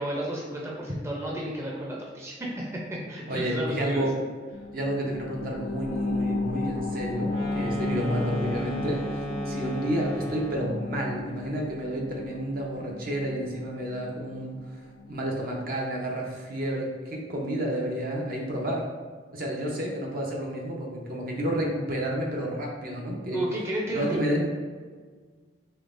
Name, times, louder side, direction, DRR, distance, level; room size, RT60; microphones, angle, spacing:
voice 1, 0.0-4.0 23.3-24.2, right 1 dB, 15° right, -4 dB, 0.5 m, -32 dB
voice 2, 3.3-4.2 4.7-14.6 15.1-18.9 19.3-23.4 23.9-24.4, equal, 55° right, -1 dB, 0.6 m, -30 dB
sound 1, 4.5-15.6 16.0-16.1, left 2 dB, 85° left, 0.4 m, -34 dB
sound 2, 7.2-10.9, right 1 dB, 35° right, 0.9 m, -34 dB
3.8 x 3.2 x 2.5 m, 1.5 s
head